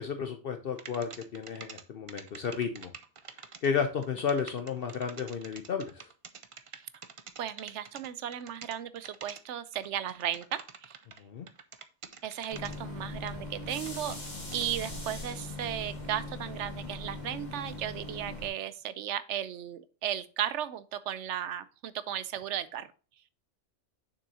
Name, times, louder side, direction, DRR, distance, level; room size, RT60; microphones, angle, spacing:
voice 1, 0.0-2.9 3.6-6.1 11.2-11.5, left 6 dB, 60° left, 6 dB, 0.8 m, -32 dB
sound 1, 0.8-1.8 2.1-11.2 11.5-12.8 13.3-14.7, right 6 dB, 40° right, 0.5 m, -47 dB
voice 2, 7.4-10.9 12.2-14.2 14.5-22.9, right 10 dB, 80° right, 15 dB, 0.9 m, -35 dB
sound 2, 12.5-18.5, left 2 dB, 40° left, 2.1 m, -40 dB
6.9 x 6.1 x 2.8 m, 0.37 s
omnidirectional pair, 1.2 m